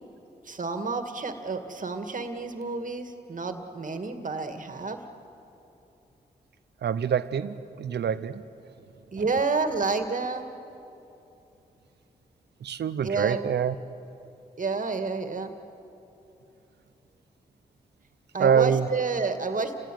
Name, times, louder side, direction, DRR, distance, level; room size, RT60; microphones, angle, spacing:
voice 1, 0.5-5.0 9.1-10.5 13.0-13.4 14.6-15.5 18.3-19.8, right 4 dB, 50° right, 7 dB, 2.2 m, -29 dB
voice 2, 6.8-8.4 12.6-13.7 18.4-18.9, right 7 dB, 80° right, 14 dB, 0.8 m, -25 dB
29.5 x 17.5 x 9.4 m, 2.9 s
cardioid pair, 55°, 17 cm